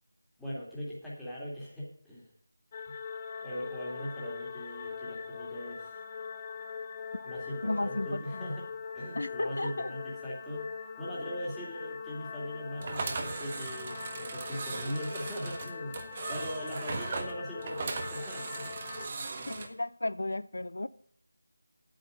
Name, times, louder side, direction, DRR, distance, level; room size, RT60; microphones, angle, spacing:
voice 1, 0.4-2.3 2.9-3.0 3.4-6.0 7.3-10.7 11.0-19.6, equal, ahead, 2.5 m, -40 dB
sound 1, 2.7-19.1, left 5 dB, 25° left, 0.7 m, -42 dB
voice 2, 7.6-8.4 9.2-9.9 19.5-20.9, left 2 dB, 65° left, 0.4 m, -34 dB
sound 2, 12.8-19.7, right 4 dB, 30° right, 1.3 m, -38 dB
9.1 x 8.9 x 6.4 m
figure-of-eight pair, 165°, 0 cm